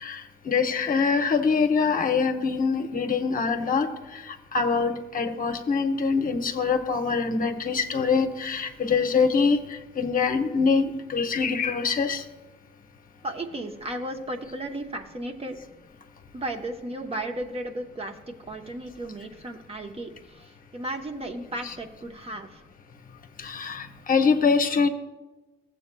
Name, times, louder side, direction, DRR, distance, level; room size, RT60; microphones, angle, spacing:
voice 1, 0.0-12.2 23.4-24.9, left 5 dB, 45° left, 6 dB, 0.8 m, -24 dB
voice 2, 13.2-15.6 16.3-22.7, right 1 dB, 30° right, 4 dB, 0.9 m, -35 dB
14.5 x 7.7 x 2.2 m, 1.1 s
cardioid pair, 90°, 20 cm